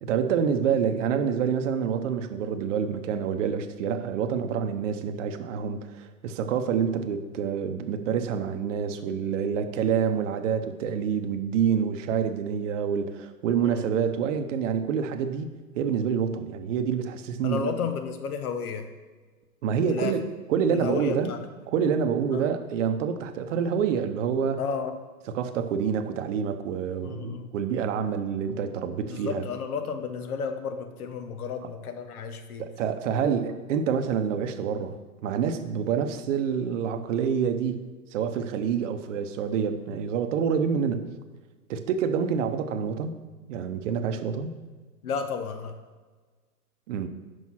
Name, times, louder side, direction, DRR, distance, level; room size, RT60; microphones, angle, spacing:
voice 1, 0.0-15.5 15.7-17.7 19.6-20.2 20.5-21.3 21.7-24.6 25.3-29.4 32.6-37.8 38.1-41.1 41.7-43.2 43.5-44.6 46.9-47.1, right 7 dB, 55° right, 8 dB, 0.8 m, -27 dB
voice 2, 17.4-18.9 19.9-20.1 20.7-21.4 22.3-22.4 24.6-25.0 27.0-27.5 29.1-32.7 33.2-33.3 45.0-45.8, left 6 dB, 70° left, 8 dB, 1.1 m, -32 dB
6.2 x 5.3 x 5.7 m, 1.4 s
hypercardioid pair, 130°, 46 cm